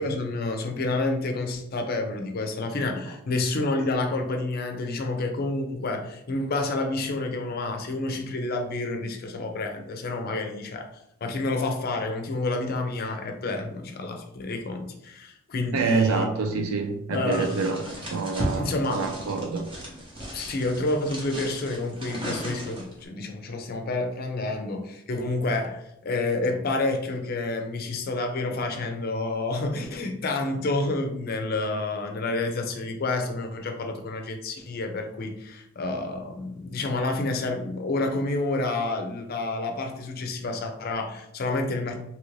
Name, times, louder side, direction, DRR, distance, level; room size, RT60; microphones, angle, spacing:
voice 1, 0.0-10.9 11.2-16.3 17.1-17.8 18.5-19.0 20.3-42.0, left 2 dB, 45° left, 4 dB, 0.4 m, -29 dB
voice 2, 15.7-17.8 18.1-19.7, right 4 dB, 90° right, 6 dB, 0.4 m, -26 dB
sound 1, 17.3-23.0, right 1 dB, 25° right, 0.8 m, -36 dB
2.9 x 2.5 x 3.1 m, 0.79 s
head